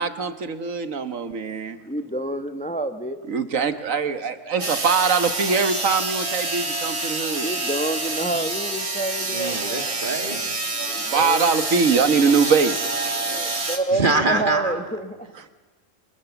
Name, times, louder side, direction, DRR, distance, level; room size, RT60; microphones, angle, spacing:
voice 1, 0.0-1.8 3.3-7.5 11.0-12.8 13.1-13.6 15.3-15.5, right 5 dB, 80° right, 10 dB, 1.7 m, -22 dB
voice 2, 1.9-3.2 7.4-9.8 10.9-11.5 13.7-15.2, right 2 dB, 5° left, 8 dB, 1.1 m, -28 dB
sound 1, 4.6-13.8, right 3 dB, 55° right, 3.0 m, -27 dB
voice 3, 9.3-10.6 13.9-14.8, right 3 dB, 40° right, 6 dB, 2.3 m, -24 dB
29.5 x 25.0 x 7.1 m, 1.2 s
omnidirectional pair, 1.4 m